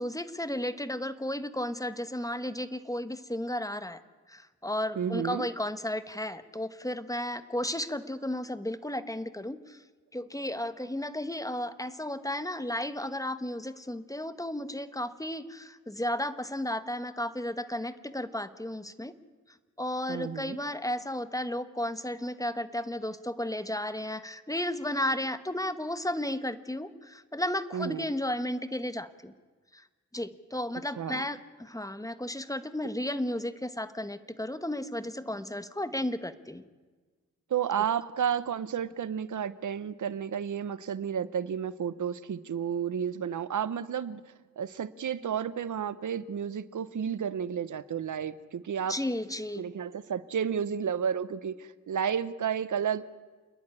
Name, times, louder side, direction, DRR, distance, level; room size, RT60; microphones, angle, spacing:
voice 1, 0.0-4.0 4.3-9.8 10.1-19.1 19.8-29.3 29.7-29.8 30.1-36.6 48.9-49.7, left 1 dB, 10° left, 11 dB, 1.1 m, -33 dB
voice 2, 5.0-5.5 20.1-20.6 27.7-28.1 31.0-31.2 37.5-44.2 44.6-49.0 49.6-53.0, right 8 dB, 85° right, 16 dB, 0.7 m, -32 dB
28.5 x 11.0 x 9.8 m, 1.4 s
wide cardioid pair, 75°, 29 cm